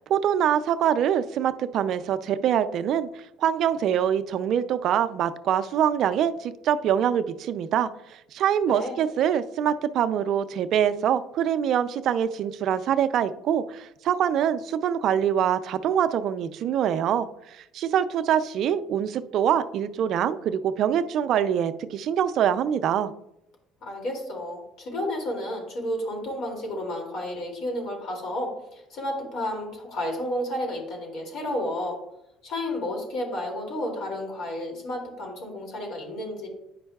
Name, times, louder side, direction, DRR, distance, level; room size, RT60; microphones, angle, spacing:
voice 1, 0.1-3.1 3.4-7.9 8.3-23.1, right 9 dB, 60° right, 12 dB, 0.4 m, -24 dB
voice 2, 8.7-9.0 23.8-32.0 32.4-36.5, left 1 dB, 65° left, 0 dB, 2.5 m, -31 dB
9.3 x 5.3 x 2.3 m, 0.83 s
supercardioid pair, 90°, 0 cm